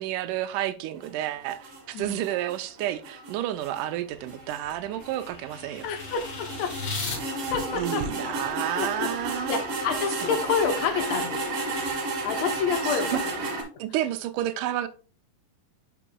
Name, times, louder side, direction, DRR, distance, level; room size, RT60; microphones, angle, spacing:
voice 1, 0.0-5.9 7.7-9.6 10.2-10.4 12.8-13.2 13.8-14.9, right 13 dB, 90° right, 2.2 m, -30 dB
sound 1, 1.0-13.6, right 2 dB, 55° right, 2.4 m, -33 dB
voice 2, 1.9-2.2 5.8-6.7 7.5-8.0 8.8-9.1 9.5-11.8 12.2-13.2, left 6 dB, 70° left, 1.9 m, -29 dB
sound 2, 3.6-7.2, left 3 dB, 45° left, 2.1 m, -37 dB
9.9 x 5.8 x 2.2 m
omnidirectional pair, 3.6 m